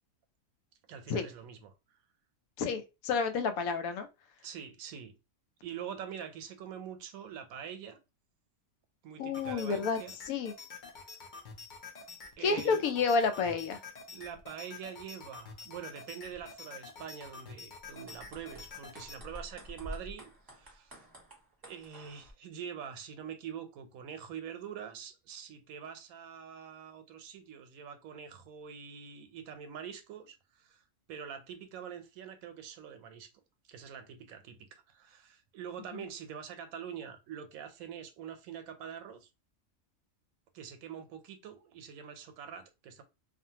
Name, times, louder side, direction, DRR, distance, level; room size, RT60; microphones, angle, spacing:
voice 1, 0.9-1.7 4.4-5.2 5.6-8.0 9.0-10.2 12.4-12.9 14.1-21.0 21.6-30.8 31.1-33.3 33.7-39.3 40.5-43.0, right 8 dB, 85° right, 1.0 m, -45 dB
voice 2, 2.6-4.1 9.2-10.0 10.3-10.5 12.4-13.8 35.9-36.0, left 5 dB, 85° left, 1.0 m, -30 dB
sound 1, 9.3-19.2, left 4 dB, 55° left, 0.5 m, -48 dB
sound 2, 17.8-22.3, equal, 20° right, 0.8 m, -48 dB
2.6 x 2.4 x 2.7 m
omnidirectional pair, 1.4 m